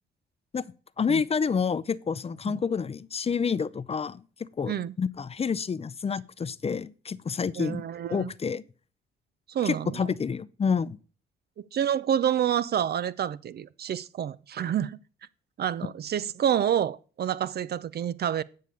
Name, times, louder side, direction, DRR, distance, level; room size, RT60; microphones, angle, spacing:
voice 1, 1.0-4.2 4.6-7.8 8.1-8.6 9.6-11.0, left 6 dB, 30° left, 0.6 m, -28 dB
voice 2, 7.6-8.3 9.5-10.1 11.6-15.0 15.6-18.4, right 9 dB, 55° right, 0.6 m, -28 dB
9.4 x 6.5 x 6.9 m
cardioid pair, 90°, 20 cm